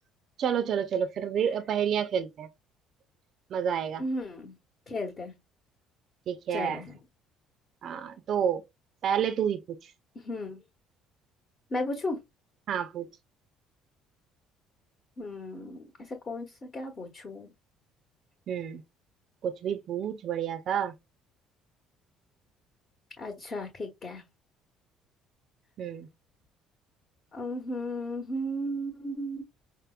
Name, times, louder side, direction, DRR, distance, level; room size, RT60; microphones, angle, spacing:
voice 1, 0.4-2.5 3.5-4.0 6.3-6.8 7.8-8.6 9.0-9.9 12.7-13.1 18.5-18.8 19.4-20.9 25.8-26.1, right 8 dB, 50° right, 0.5 m, -29 dB
voice 2, 4.0-4.6 4.9-5.3 6.5-7.0 10.1-10.6 11.7-12.2 15.2-17.5 23.2-24.2 27.3-29.4, left 1 dB, 35° left, 1.0 m, -35 dB
5.2 x 2.0 x 2.3 m
figure-of-eight pair, 50°, 0 cm